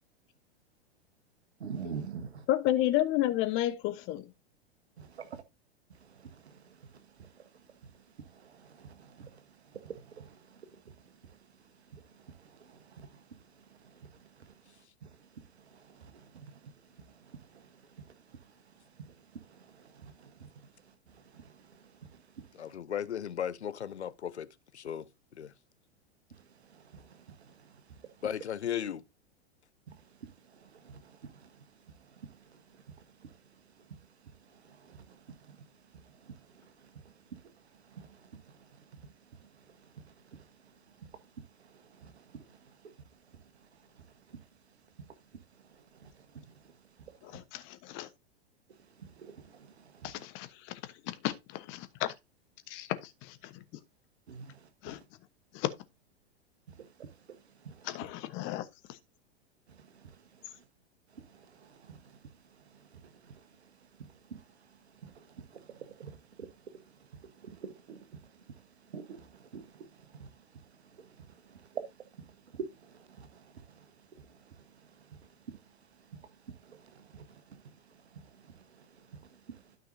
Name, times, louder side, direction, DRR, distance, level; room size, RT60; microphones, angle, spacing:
voice 1, 1.6-2.5 5.0-5.4 5.9-22.8 26.3-28.4 29.9-47.4 48.7-50.3 54.3-55.1 56.7-58.1 59.7-60.7 61.1-79.8, right 6 dB, 75° right, 1.4 m, -50 dB
voice 2, 2.5-4.3 47.6-48.1 50.0-52.1 52.7-53.8 54.8-55.0 55.5-55.7 57.9-59.0, left 14 dB, 35° left, 1.1 m, -32 dB
voice 3, 22.6-24.5 24.7-25.1 25.3-25.5 28.2-29.0, left 9 dB, 80° left, 0.7 m, -35 dB
12.5 x 5.3 x 2.7 m
figure-of-eight pair, 100°, 33 cm